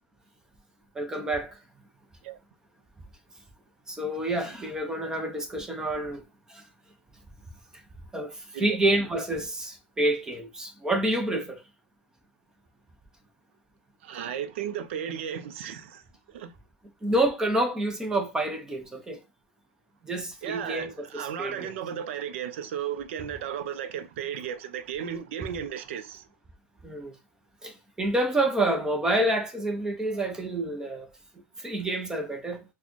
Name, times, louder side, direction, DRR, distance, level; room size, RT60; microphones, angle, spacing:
voice 1, 0.9-1.6 3.9-6.2 6.5-6.6 8.1-11.6 17.0-19.2 20.0-21.7 26.8-27.1 27.6-31.1 31.6-32.6, right 1 dB, 10° right, 0.7 m, -28 dB
voice 2, 14.0-16.0 16.3-16.5 20.4-26.2, right 9 dB, 70° right, 0.5 m, -34 dB
4.0 x 2.2 x 3.1 m
supercardioid pair, 145°, 7 cm